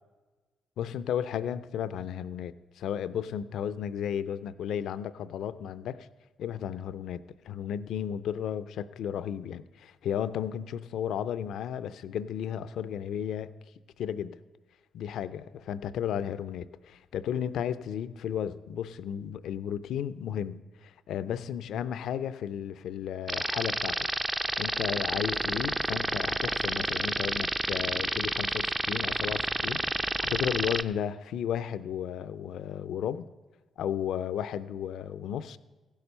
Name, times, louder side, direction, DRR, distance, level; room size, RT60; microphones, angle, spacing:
voice 1, 0.8-6.1 6.4-13.5 14.0-14.4 14.9-24.1 24.4-33.3 33.8-35.6, left 9 dB, 75° left, 15 dB, 0.4 m, -34 dB
sound 1, 23.3-30.8, right 2 dB, 20° right, 0.5 m, -29 dB
15.5 x 7.0 x 5.5 m, 1.3 s
supercardioid pair, 60°, 0 cm